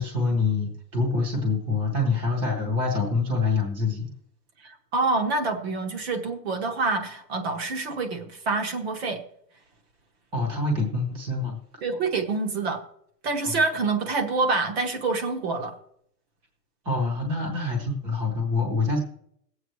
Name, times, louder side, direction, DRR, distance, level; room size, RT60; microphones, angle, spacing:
voice 1, 0.0-4.1 10.3-11.6 13.4-13.6 16.8-19.0, left 3 dB, 10° right, 1 dB, 0.8 m, -26 dB
voice 2, 4.6-9.2 11.8-12.8 13.2-15.7, right 3 dB, 40° right, 6 dB, 1.0 m, -26 dB
17.5 x 7.9 x 3.0 m, 0.69 s
supercardioid pair, 180°, 48 cm